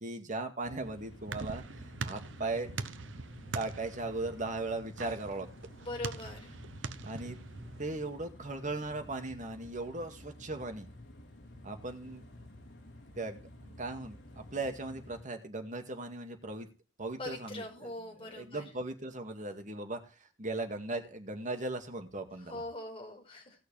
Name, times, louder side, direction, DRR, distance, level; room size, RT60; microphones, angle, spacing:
voice 1, 0.0-2.7 3.5-5.5 7.0-7.4 7.8-10.9 11.6-12.2 13.2-16.7 17.0-22.6, right 2 dB, 40° right, 5 dB, 2.1 m, -38 dB
sound 1, 0.6-15.2, left 1 dB, 75° left, 3.5 m, -52 dB
sound 2, 0.7-7.9, right 4 dB, 70° right, 0.8 m, -43 dB
voice 2, 5.8-6.5 17.2-18.6 22.5-23.5, left 1 dB, 30° left, 1 dB, 4.8 m, -42 dB
18.5 x 6.5 x 3.3 m, 0.31 s
head